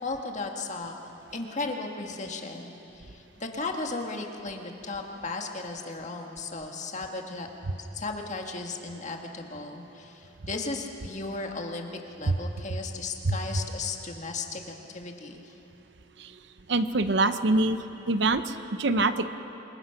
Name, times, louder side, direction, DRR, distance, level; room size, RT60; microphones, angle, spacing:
voice 1, 0.0-0.9 1.3-7.5 7.8-15.5, left 3 dB, 40° left, 2 dB, 1.8 m, -35 dB
voice 2, 16.7-17.8 18.1-19.3, right 2 dB, 60° right, 10 dB, 0.8 m, -24 dB
27.0 x 21.5 x 5.9 m, 3.0 s
head